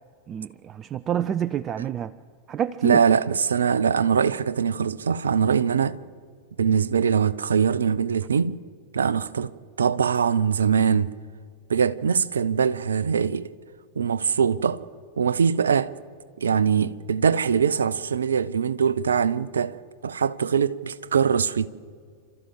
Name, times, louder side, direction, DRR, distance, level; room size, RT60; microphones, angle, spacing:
voice 1, 0.3-2.1 2.5-3.0, right 9 dB, 25° right, 0.5 m, -27 dB
voice 2, 2.8-6.0 6.6-8.6 8.9-11.1 11.7-13.5 14.0-14.8 15.2-15.9 16.4-19.8 20.0-21.7, right 6 dB, 70° right, 0.6 m, -22 dB
28.5 x 13.0 x 7.5 m
figure-of-eight pair, 90°, 0 cm